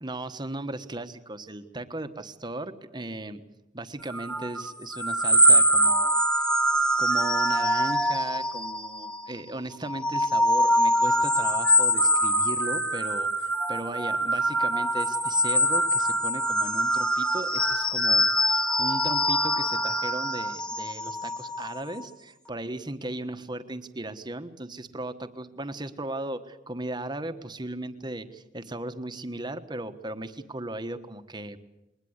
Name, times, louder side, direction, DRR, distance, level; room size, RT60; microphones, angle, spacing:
voice 1, 0.0-3.4 3.7-6.6 7.0-31.6, right 1 dB, 25° right, 10 dB, 1.3 m, -37 dB
sound 1, 4.1-9.3 9.7-22.1, equal, 5° left, 1.0 m, -24 dB
21.5 x 20.0 x 8.1 m, 0.95 s
head